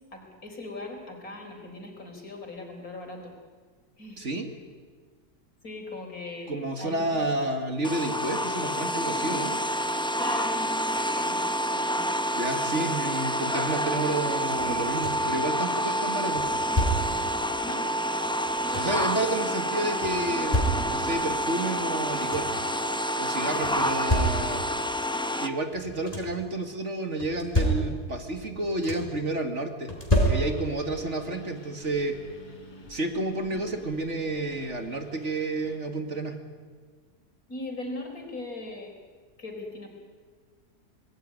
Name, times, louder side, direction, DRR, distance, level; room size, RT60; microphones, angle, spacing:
voice 1, 0.1-3.3 4.0-4.2 5.6-6.5 6.8-7.3 8.3-8.4 10.2-12.1 17.6-17.9 18.4-18.9 23.4-24.2 33.4-33.6 37.5-38.9 39.4-39.9, left 2 dB, 65° left, 3 dB, 4.8 m, -40 dB
voice 2, 4.2-4.5 6.5-9.6 12.3-16.5 18.7-22.5 23.2-24.7 25.4-29.9 30.3-32.2 32.9-36.4, right 2 dB, 50° right, 6 dB, 2.4 m, -30 dB
sound 1, 7.8-25.5, equal, 5° left, 0.7 m, -28 dB
sound 2, 14.6-15.4 16.3-17.3 18.2-19.1 20.0-21.2 21.8-21.9 22.1-22.7 23.6-24.8 25.7-26.5 27.2-28.2 28.5-29.2 29.9-30.9 32.2-32.3 32.8-33.0, equal, 25° left, 4.6 m, -29 dB
Engine, 30.3-35.8, left 2 dB, 90° left, 3.8 m, -50 dB
26.5 x 20.0 x 9.7 m, 1.5 s
omnidirectional pair, 1.6 m